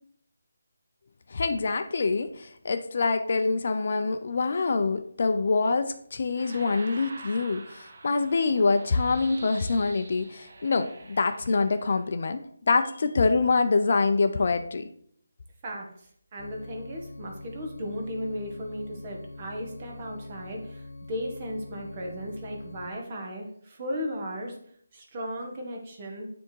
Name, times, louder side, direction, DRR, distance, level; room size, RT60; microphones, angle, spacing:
voice 1, 1.3-14.8, left 4 dB, 45° left, 9 dB, 0.5 m, -25 dB
sound 1, 6.4-12.0, right 3 dB, 45° right, 1.1 m, -46 dB
voice 2, 15.6-24.6 24.9-26.3, equal, 25° right, 0 dB, 1.4 m, -36 dB
sound 2, 16.4-22.9, left 2 dB, 80° left, 1.0 m, -44 dB
9.7 x 3.6 x 4.6 m, 0.65 s
figure-of-eight pair, 170°, 0 cm